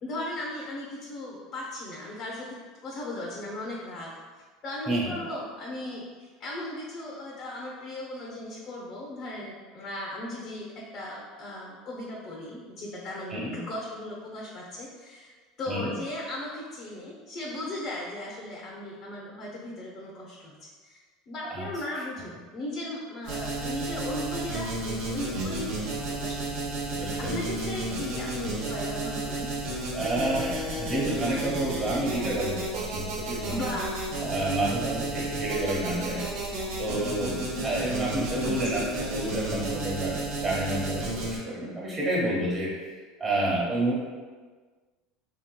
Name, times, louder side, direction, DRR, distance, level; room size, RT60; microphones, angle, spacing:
voice 1, 0.0-2.5 2.8-4.1 4.6-10.7 10.9-15.3 15.6-20.6 20.8-26.7 27.2-29.5 33.5-34.0 37.5-37.6 38.4-38.6, left 1 dB, 45° left, -3 dB, 0.7 m, -37 dB
voice 2, 4.9-5.2 13.3-13.6 15.7-15.9 21.5-21.7 26.9-27.4 29.9-33.7 34.2-36.3 36.8-42.7 43.2-44.0, right 1 dB, 25° right, -6 dB, 1.3 m, -29 dB
sound 1, 23.2-41.4, right 2 dB, 80° right, 0.9 m, -32 dB
3.4 x 2.8 x 2.2 m, 1.4 s
supercardioid pair, 110°, 0 cm